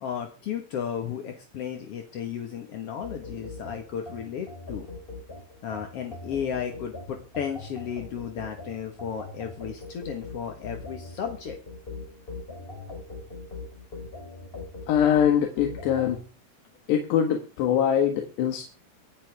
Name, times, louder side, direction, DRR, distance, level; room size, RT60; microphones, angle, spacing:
voice 1, 0.0-4.9 5.6-11.6, left 8 dB, 60° left, 4 dB, 1.6 m, -34 dB
sound 1, 3.0-16.2, left 3 dB, 15° left, 3.4 m, -41 dB
voice 2, 14.9-16.2 16.9-18.7, left 9 dB, 85° left, 3 dB, 3.8 m, -23 dB
25.0 x 8.7 x 3.5 m, 0.34 s
omnidirectional pair, 4.7 m